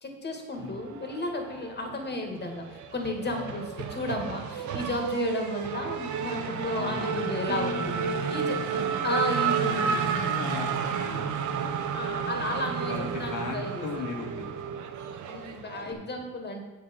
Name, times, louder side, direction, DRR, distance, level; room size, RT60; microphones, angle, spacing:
voice 1, 0.0-8.0 8.3-8.6 9.0-10.5 11.9-14.0 15.3-16.6, left 2 dB, 35° left, 3 dB, 2.2 m, -33 dB
Race car auto racing / Accelerating revving vroom, 0.9-1.9 2.2-15.9, right 7 dB, 75° right, 0.9 m, -31 dB
voice 2, 6.7-9.1 9.4-11.8 12.3-12.6 12.8-14.8 15.8-16.0, left 3 dB, 80° left, 1 dB, 2.1 m, -38 dB
7.9 x 7.5 x 5.5 m, 1.2 s
cardioid pair, 90°, 30 cm